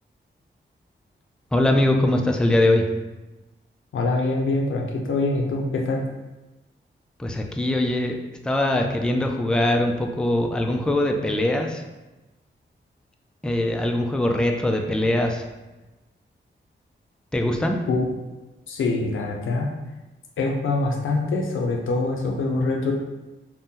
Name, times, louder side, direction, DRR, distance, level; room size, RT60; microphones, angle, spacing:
voice 1, 1.5-2.9 7.2-8.2 8.4-11.8 13.4-15.5 17.3-17.8, left 1 dB, 5° left, 3 dB, 0.3 m, -22 dB
voice 2, 3.9-6.0 17.9-18.1 18.7-19.7 20.4-22.9, left 3 dB, 90° left, 0 dB, 0.5 m, -24 dB
2.7 x 2.1 x 3.6 m, 1.1 s
cardioid pair, 55°, 20 cm